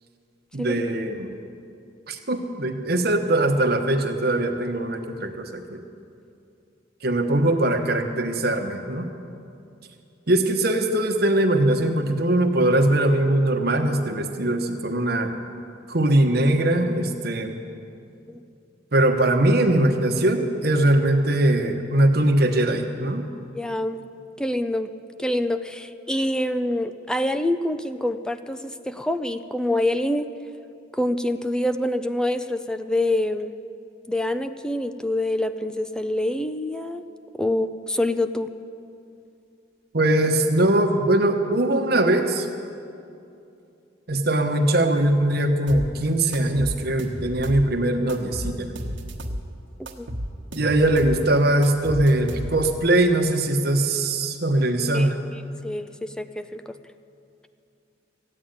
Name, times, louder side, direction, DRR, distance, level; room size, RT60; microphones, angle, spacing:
voice 1, 0.5-1.4 2.1-5.8 7.0-9.1 10.3-15.3 15.9-17.6 18.9-23.3 39.9-42.5 44.1-48.7 50.5-55.2, right 1 dB, 55° right, 5 dB, 1.1 m, -21 dB
voice 2, 23.5-24.0 24.4-24.9 25.2-28.6 28.9-30.3 30.9-33.5 34.1-37.0 37.4-38.5 50.0-50.1 54.9-55.1 55.6-56.6, left 1 dB, 5° left, 10 dB, 0.4 m, -26 dB
sound 1, 45.7-45.9 46.3-47.7 48.1-49.4 49.9-51.2 51.6-52.8, equal, 85° right, 1.3 m, -32 dB
14.5 x 8.9 x 9.3 m, 2.6 s
head